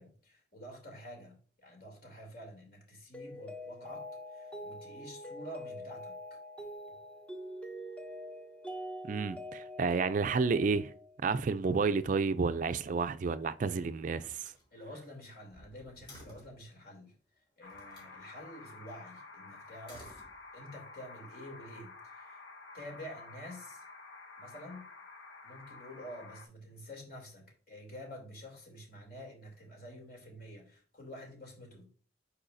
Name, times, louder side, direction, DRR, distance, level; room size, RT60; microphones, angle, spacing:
voice 1, 0.0-6.1 14.7-17.1 17.6-20.2 20.5-22.4 22.7-23.8 24.4-24.8 25.4-31.9, equal, 55° left, 2.8 m, -49 dB
Mallet percussion, 3.1-11.3, equal, 5° left, 0.6 m, -45 dB
voice 2, 9.0-10.9 11.2-14.5, right 4 dB, 45° right, 0.3 m, -30 dB
Slam, 13.3-13.7 14.2-16.7 17.7-18.2 19.7-20.8, equal, 25° left, 3.2 m, -56 dB
sound 1, 17.6-26.5, left 3 dB, 85° left, 1.2 m, -51 dB
8.6 x 4.8 x 2.6 m
head